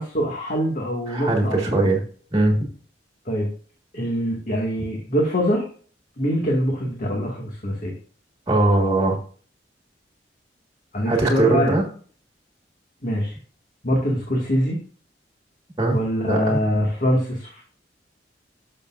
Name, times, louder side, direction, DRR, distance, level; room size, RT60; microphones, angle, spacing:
voice 1, 0.0-1.9 3.3-3.5 3.9-5.6 6.2-7.9 10.9-11.8 13.0-13.3 13.8-14.8 15.9-17.6, equal, 50° left, -1 dB, 2.0 m, -24 dB
voice 2, 1.1-2.0 2.3-2.6 8.5-9.2 11.0-11.8 15.8-16.6, right 2 dB, 20° right, 1 dB, 1.8 m, -20 dB
12.0 x 6.7 x 2.6 m, 0.44 s
head